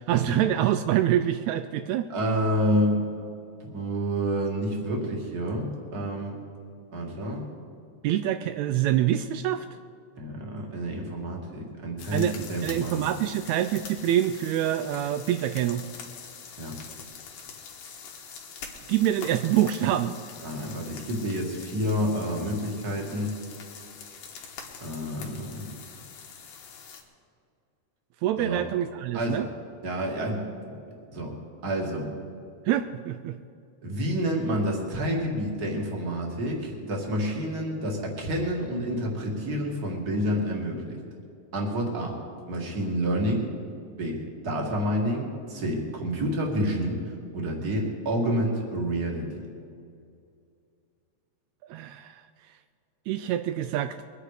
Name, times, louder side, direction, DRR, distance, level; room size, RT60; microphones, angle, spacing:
voice 1, 0.0-2.1 8.0-9.7 12.1-12.4 12.6-15.8 18.9-20.2 28.2-29.5 32.7-33.4 51.7-52.2 53.1-54.0, right 11 dB, 85° right, 10 dB, 1.6 m, -25 dB
voice 2, 2.1-3.0 3.7-6.4 6.9-7.5 10.2-13.1 16.6-16.7 20.4-23.3 24.8-25.7 28.4-28.6 29.1-29.5 29.8-30.7 31.1-31.3 31.6-32.1 33.8-41.0 41.5-42.2 42.5-43.5 44.0-44.2 44.4-49.3, equal, 30° right, 0 dB, 2.3 m, -29 dB
sound 1, 12.0-27.0, left 6 dB, 85° left, 3.1 m, -44 dB
22.5 x 9.9 x 4.9 m, 2.4 s
omnidirectional pair, 3.7 m